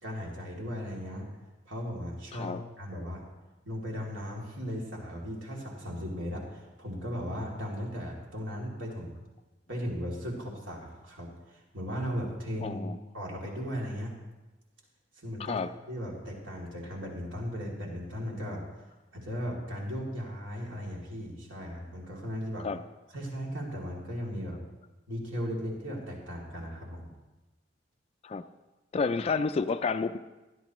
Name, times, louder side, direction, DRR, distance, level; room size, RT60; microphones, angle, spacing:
voice 1, 0.0-1.3 1.6-3.2 3.6-9.1 9.7-12.9 13.1-14.1 15.2-18.6 19.1-22.7 23.1-24.6 25.1-27.1, equal, 80° right, 2.8 m, -37 dB
voice 2, 2.3-2.6 12.6-13.0 15.4-15.7 22.6-22.8 28.2-28.4 28.9-30.2, left 4 dB, 30° left, 0.3 m, -30 dB
16.5 x 11.0 x 3.1 m
head